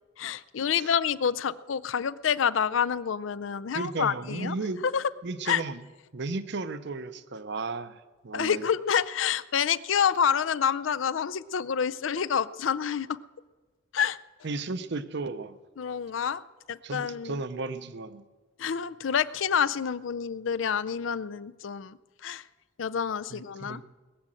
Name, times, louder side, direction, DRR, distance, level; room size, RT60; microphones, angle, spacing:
voice 1, 0.2-4.6 4.8-5.0 5.5-5.6 8.3-13.2 13.9-14.2 15.8-16.4 16.7-17.4 18.6-22.0 22.2-22.4 22.8-23.8, left 7 dB, 80° left, 16 dB, 0.5 m, -28 dB
voice 2, 3.7-4.8 5.2-5.8 6.1-8.6 14.4-15.6 16.8-18.2 23.3-23.8, right 3 dB, 60° right, 13 dB, 0.7 m, -34 dB
20.5 x 7.6 x 7.5 m, 1.3 s
head